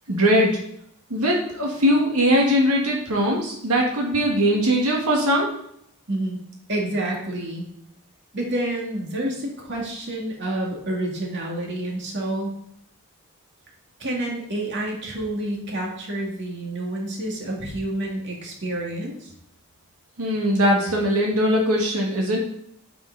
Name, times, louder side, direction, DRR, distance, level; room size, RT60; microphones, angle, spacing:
voice 1, 0.1-0.6 1.1-5.5 20.2-22.4, equal, 85° right, -2 dB, 1.8 m, -20 dB
voice 2, 6.1-6.4 6.7-7.7 8.3-12.5 14.0-19.3, right 1 dB, 55° right, -1 dB, 2.4 m, -28 dB
8.7 x 7.1 x 4.0 m, 0.72 s
head